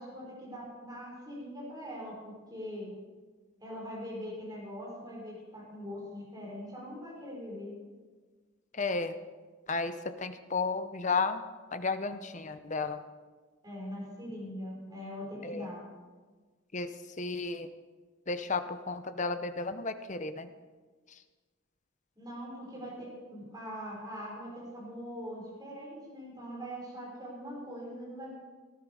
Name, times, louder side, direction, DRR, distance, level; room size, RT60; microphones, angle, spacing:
voice 1, 0.0-2.9 3.6-7.8 13.6-15.8 22.2-28.3, equal, 20° right, -4 dB, 5.5 m, -42 dB
voice 2, 8.7-9.2 9.7-11.4 11.7-13.0 15.4-15.7 16.7-16.9 17.2-17.7 18.3-20.5, left 4 dB, 35° left, 10 dB, 0.8 m, -33 dB
18.0 x 11.5 x 4.9 m, 1.4 s
head